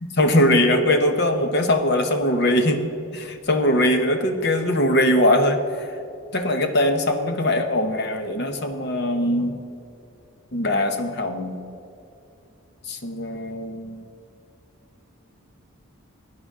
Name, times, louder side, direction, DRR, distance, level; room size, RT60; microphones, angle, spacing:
voice 1, 0.0-2.8 3.1-5.6 6.3-9.6 10.5-11.6 12.9-14.0, left 1 dB, 50° left, 6 dB, 0.9 m, -21 dB
16.5 x 10.0 x 3.7 m, 2.7 s
head